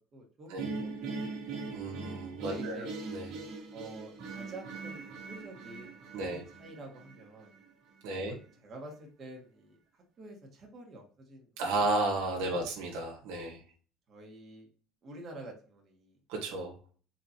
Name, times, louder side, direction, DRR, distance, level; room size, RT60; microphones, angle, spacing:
voice 1, 0.1-1.0 1.5-1.7 2.4-2.9 3.7-6.0 6.3-7.5 8.1-8.4 8.6-9.7 10.2-11.5 12.5-12.6 13.4-13.5 14.1-14.7 15.0-16.1, right 1 dB, 40° right, 0 dB, 1.6 m, -48 dB
sound 1, 0.6-7.7, right 4 dB, 65° right, 1.8 m, -41 dB
voice 2, 1.7-3.3 6.1-6.4 8.0-8.3 11.6-13.6 16.3-16.7, right 2 dB, 85° right, 0 dB, 1.7 m, -33 dB
4.4 x 4.2 x 2.9 m, 0.42 s
supercardioid pair, 105°, 0 cm